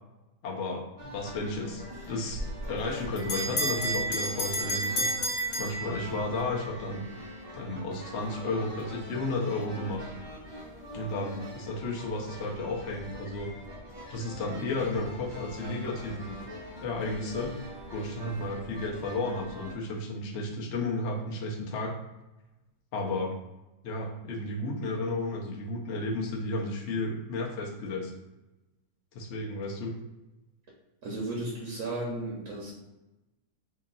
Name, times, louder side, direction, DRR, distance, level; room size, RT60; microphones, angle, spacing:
voice 1, 0.4-2.4 2.7-5.1 5.6-7.0 7.5-10.0 10.9-13.5 14.1-16.3 16.8-17.5 17.9-21.9 22.9-23.3 23.8-28.1 29.1-29.9, left 2 dB, 60° left, -1 dB, 0.8 m, -33 dB
sound 1, 1.0-19.7, equal, 25° right, 0.5 m, -44 dB
Bell, 2.4-6.4, right 1 dB, 85° left, 1.6 m, -31 dB
voice 2, 31.0-32.7, right 2 dB, 60° right, -2 dB, 0.9 m, -34 dB
2.9 x 2.7 x 3.8 m, 1.0 s
omnidirectional pair, 1.7 m